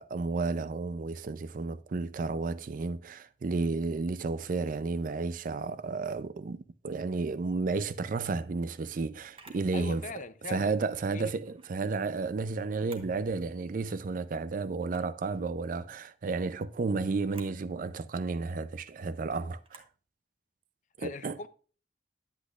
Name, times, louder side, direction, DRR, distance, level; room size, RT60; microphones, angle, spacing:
voice 1, 0.0-10.0 10.5-19.8 21.0-21.4, right 3 dB, 50° right, 0.4 m, -32 dB
Camera, 9.3-9.7 11.4-11.8 12.7-13.2 13.6-13.7 14.8-15.2 17.2-17.6 19.6-20.0, right 4 dB, 30° right, 1.0 m, -53 dB
voice 2, 9.7-10.8 11.1-11.3 21.0-21.5, left 4 dB, 45° left, 0.5 m, -40 dB
9.8 x 8.2 x 2.4 m
head